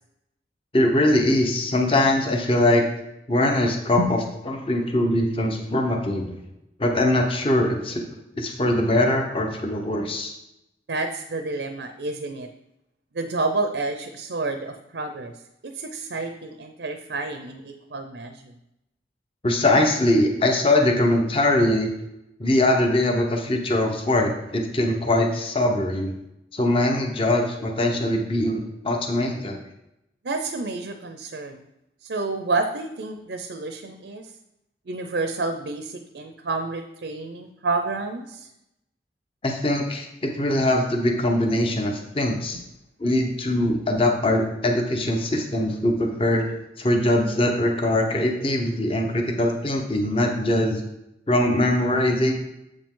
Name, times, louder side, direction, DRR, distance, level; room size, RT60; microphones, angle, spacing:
voice 1, 0.7-2.8 3.3-4.2 4.5-6.4 6.8-8.0 8.4-10.3 19.4-21.9 22.4-26.1 26.5-29.6 39.4-42.6 43.0-46.4 46.8-50.8 51.3-52.3, left 1 dB, 30° left, 3 dB, 0.8 m, -22 dB
voice 2, 10.9-12.5 13.1-15.3 15.6-18.5 30.2-31.6 32.0-34.3 34.9-38.5 42.5-42.6, right 3 dB, 75° right, 6 dB, 0.6 m, -29 dB
7.4 x 5.1 x 3.7 m, 0.87 s
head